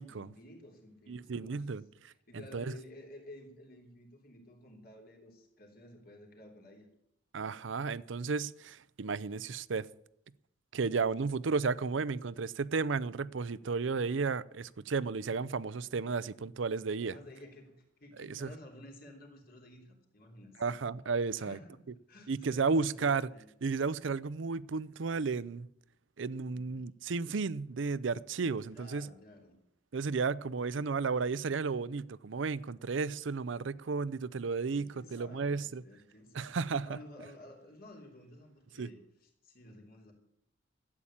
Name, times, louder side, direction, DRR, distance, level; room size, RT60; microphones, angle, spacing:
voice 1, 0.1-1.7 2.1-6.9 17.0-17.7 18.0-20.6 21.3-21.8 22.1-23.5 26.5-26.9 28.7-29.6 34.7-36.6 36.8-40.1, left 1 dB, 50° left, 3.4 m, -53 dB
voice 2, 1.1-2.7 7.3-9.9 10.7-17.1 18.2-18.5 20.6-21.6 22.3-23.3 23.6-25.7 26.2-29.1 29.9-35.8 36.3-36.9 38.8-38.9, right 4 dB, 75° right, 0.5 m, -33 dB
13.0 x 8.7 x 8.7 m
head